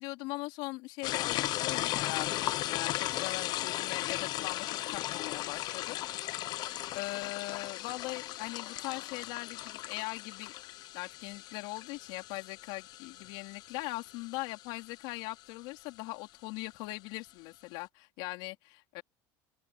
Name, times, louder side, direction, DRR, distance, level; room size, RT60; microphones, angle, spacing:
voice 1, 0.0-6.7 6.9-10.6 10.9-19.0, left 23 dB, 75° left, 4.0 m, -40 dB
sound 1, 1.0-15.4, left 15 dB, 50° left, 0.9 m, -37 dB
open air
cardioid pair, 145°, 9 cm